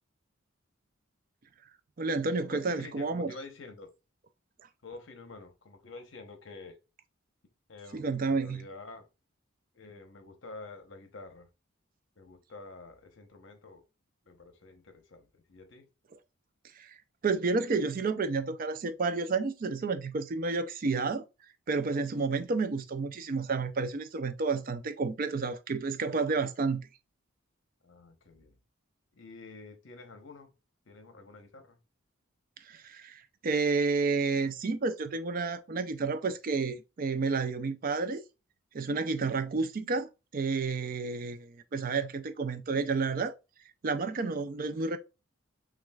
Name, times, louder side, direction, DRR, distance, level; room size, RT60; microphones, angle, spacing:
voice 1, 2.0-3.3 7.9-8.6 16.8-17.0 17.2-21.2 21.7-26.9 32.7-38.2 38.7-43.3 43.8-45.0, right 4 dB, 40° right, 0.4 m, -30 dB
voice 2, 2.5-3.9 4.8-6.8 7.7-9.1 9.7-11.5 12.2-13.8 14.3-15.9 27.8-28.6 29.1-30.5 30.9-31.8, left 3 dB, 60° left, 0.9 m, -48 dB
6.1 x 2.4 x 2.3 m
head